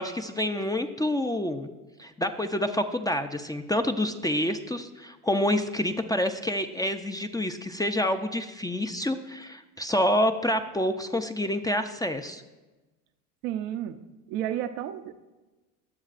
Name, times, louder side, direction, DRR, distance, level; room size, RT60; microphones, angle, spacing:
voice 1, 0.0-1.7 2.0-12.4, left 1 dB, 10° left, 0.5 m, -28 dB
voice 2, 13.4-14.0 14.3-15.1, right 11 dB, 70° right, 0.8 m, -31 dB
21.5 x 7.2 x 2.5 m
hypercardioid pair, 80°, 46 cm